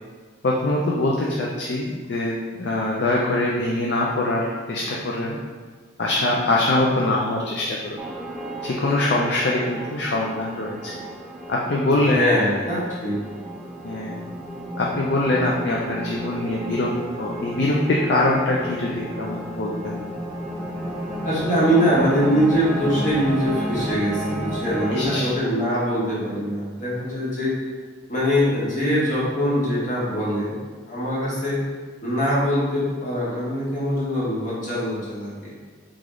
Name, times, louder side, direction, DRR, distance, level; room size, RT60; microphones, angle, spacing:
voice 1, 0.4-5.4 6.0-8.0 8.6-10.9 11.5-12.2 13.8-14.2 14.8-16.9 17.2-20.0 24.9-25.3, left 2 dB, 60° left, -3 dB, 0.4 m, -23 dB
sound 1, 8.0-25.2, right 1 dB, 5° right, 0.4 m, -32 dB
voice 2, 12.1-13.2 21.2-27.5 28.1-30.6 30.9-31.6 32.0-35.5, equal, 40° left, -7 dB, 1.3 m, -23 dB
3.6 x 3.4 x 3.7 m, 1.5 s
head